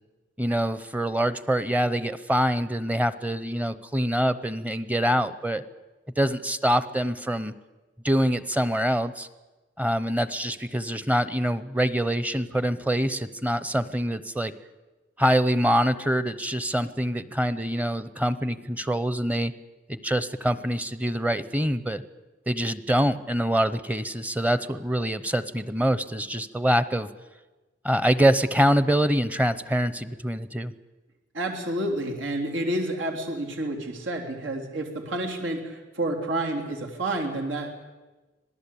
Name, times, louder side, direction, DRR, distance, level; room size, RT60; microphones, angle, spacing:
voice 1, 0.4-5.6 6.2-7.5 8.0-9.3 9.8-14.5 15.2-19.5 19.9-22.0 22.5-27.1 27.8-30.7, equal, 10° right, 15 dB, 0.8 m, -25 dB
voice 2, 31.3-37.7, right 1 dB, 85° right, 2 dB, 3.7 m, -29 dB
25.5 x 18.0 x 8.6 m, 1.2 s
head